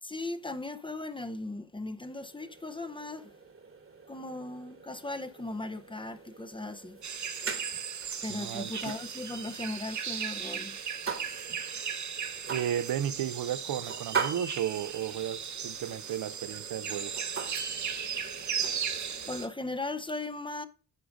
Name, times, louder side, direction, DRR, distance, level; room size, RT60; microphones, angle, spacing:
voice 1, 0.0-3.3 4.1-7.0 8.2-10.8 19.3-20.7, left 2 dB, 15° left, 0.6 m, -37 dB
sound 1, 2.0-19.5, right 5 dB, 40° right, 1.3 m, -42 dB
sound 2, 7.0-19.5, right 7 dB, 55° right, 1.0 m, -37 dB
voice 2, 8.3-8.7 12.5-17.1, right 10 dB, 75° right, 0.6 m, -34 dB
9.7 x 5.1 x 3.8 m
cardioid pair, 90°, 35 cm